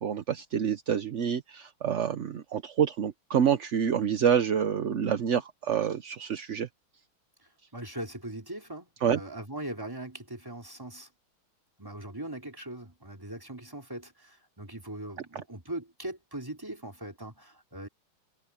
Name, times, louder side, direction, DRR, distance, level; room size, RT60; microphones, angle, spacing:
voice 1, 0.0-6.7 9.0-9.2, right 8 dB, 55° right, 0.8 m, -27 dB
voice 2, 7.7-11.1 11.8-17.9, right 1 dB, 10° right, 3.7 m, -40 dB
omnidirectional pair, 2.2 m